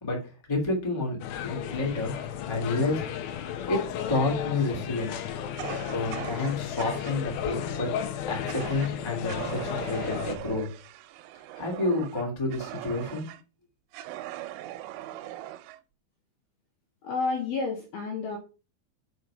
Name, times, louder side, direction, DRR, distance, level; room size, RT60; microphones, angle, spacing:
voice 1, 0.0-2.1 2.5-3.1 3.7-5.2 5.9-10.7 11.5-13.2, left 2 dB, 10° left, -1 dB, 1.2 m, -30 dB
sound 1, 1.2-10.4, left 9 dB, 90° left, 2.1 m, -34 dB
Fire, 5.6-7.2 8.5-8.9 9.3-13.4 13.9-15.8, right 14 dB, 90° right, 3.2 m, -40 dB
voice 2, 17.0-18.4, left 4 dB, 70° left, 2 dB, 2.5 m, -30 dB
6.5 x 5.0 x 5.6 m, 0.32 s
omnidirectional pair, 5.5 m